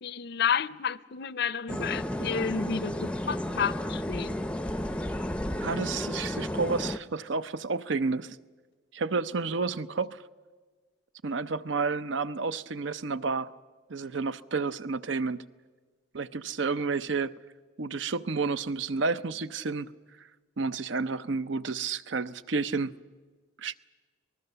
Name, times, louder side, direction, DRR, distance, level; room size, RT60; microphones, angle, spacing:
voice 1, 0.0-2.9 3.3-4.3, left 7 dB, 55° left, 0.6 m, -30 dB
sound 1, 1.7-7.0, left 1 dB, 5° left, 0.6 m, -32 dB
voice 2, 5.6-8.4 8.9-10.2 11.2-13.5 13.9-15.4 16.1-17.3 17.8-19.9 20.6-22.9 23.6-23.8, right 4 dB, 65° right, 0.6 m, -30 dB
25.5 x 19.5 x 6.8 m
head